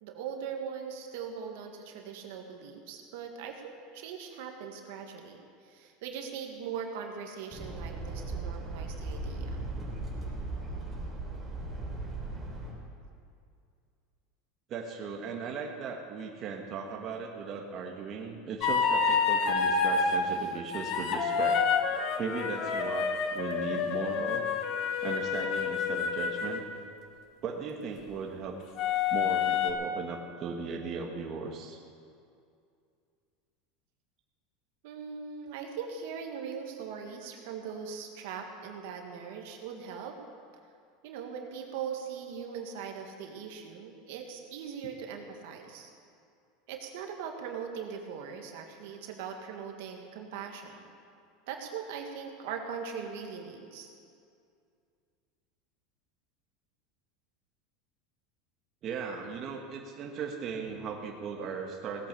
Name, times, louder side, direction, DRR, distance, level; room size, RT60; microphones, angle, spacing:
voice 1, 0.0-9.6 34.8-40.2 41.0-45.9 46.7-50.9 51.5-53.9, right 6 dB, 70° right, 3 dB, 1.8 m, -40 dB
sound 1, 7.5-12.7, right 2 dB, 15° right, 3.9 m, -37 dB
voice 2, 14.7-21.6 22.2-24.5 25.0-26.6 27.4-28.5 29.1-31.8 58.8-62.1, right 5 dB, 40° right, 1 dB, 1.5 m, -37 dB
sound 2, 18.6-20.2 20.7-26.6 28.8-29.7, left 6 dB, 50° left, 1.4 m, -28 dB
17.5 x 8.7 x 7.0 m, 2.4 s
supercardioid pair, 130°, 0 cm